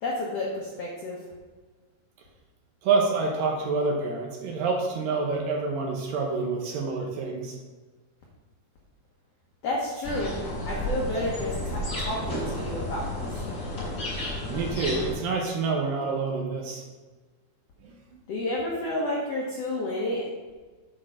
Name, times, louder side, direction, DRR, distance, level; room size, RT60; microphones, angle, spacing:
voice 1, 0.0-1.2 9.6-10.4 10.7-13.3 18.3-20.3, left 1 dB, 75° left, -3 dB, 1.4 m, -30 dB
voice 2, 2.8-7.6 14.5-16.8 17.8-18.2, right 4 dB, 70° right, 1 dB, 2.3 m, -27 dB
sound 1, 10.0-15.1, left 1 dB, 30° left, 3.3 m, -32 dB
8.6 x 4.7 x 6.0 m, 1.4 s
omnidirectional pair, 4.6 m